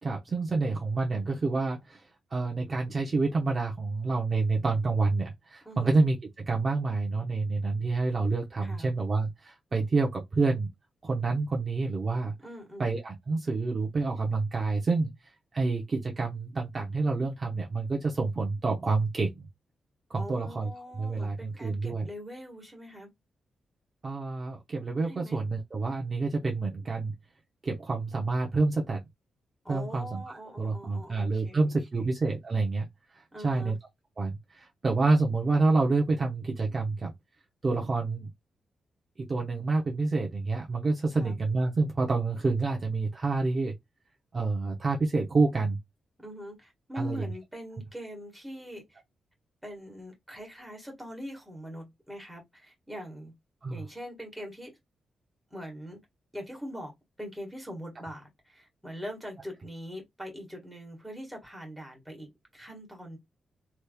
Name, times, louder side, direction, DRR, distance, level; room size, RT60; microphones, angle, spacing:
voice 1, 0.0-2.0 2.3-10.7 11.0-12.3 12.8-15.1 15.5-19.5 20.1-22.1 24.0-27.1 27.6-29.0 29.7-32.9 33.1-33.8 34.2-37.1 37.6-38.3 39.2-43.7 44.3-45.8 47.0-47.2 53.6-53.8, right 3 dB, 35° right, 0.7 m, -28 dB
voice 2, 5.6-6.0 8.6-8.9 12.4-12.9 20.2-23.1 25.0-25.4 29.6-32.1 33.3-33.7 41.1-41.3 46.2-49.0 49.6-53.3 53.7-54.7 55.5-56.0 56.3-56.9 57.2-63.2, equal, 5° right, 1.5 m, -42 dB
3.3 x 3.0 x 2.2 m
wide cardioid pair, 130°, 0 cm